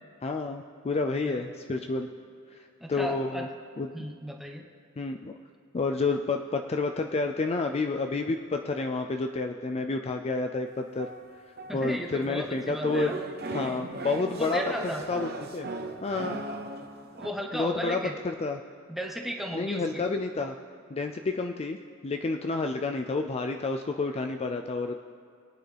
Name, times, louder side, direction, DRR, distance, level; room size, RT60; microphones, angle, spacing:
voice 1, 0.2-2.1 2.5-3.5 3.8-3.9 5.0-5.3 5.7-11.1 11.7-13.1 13.5-15.7 16.0-16.4 17.5-18.6 19.5-20.6 20.9-21.8 22.0-25.0, left 3 dB, 30° left, 5 dB, 0.4 m, -30 dB
voice 2, 2.8-3.5 3.9-4.6 11.7-13.2 14.4-15.0 17.1-18.1 18.9-20.0, equal, ahead, 0 dB, 1.0 m, -35 dB
sound 1, 10.7-12.1 12.8-17.3, right 2 dB, 50° right, 0.9 m, -37 dB
22.0 x 9.3 x 3.4 m, 2.4 s
head